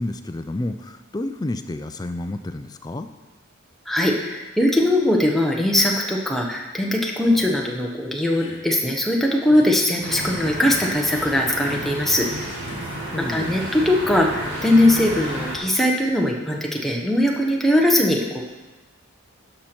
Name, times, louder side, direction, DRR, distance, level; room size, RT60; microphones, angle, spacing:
voice 1, 0.0-3.1 13.1-13.6, left 1 dB, 20° left, 9 dB, 0.3 m, -30 dB
voice 2, 3.9-12.3 13.2-18.5, left 1 dB, ahead, -1 dB, 0.8 m, -20 dB
sound 1, 7.1-7.5 8.3-8.6 9.4-9.7 10.6-10.9 11.6-11.9 12.7-13.1, left 1 dB, 55° left, 1.4 m, -40 dB
sound 2, 10.0-15.6, right 1 dB, 55° right, 2.0 m, -32 dB
11.5 x 5.7 x 4.4 m, 1.2 s
head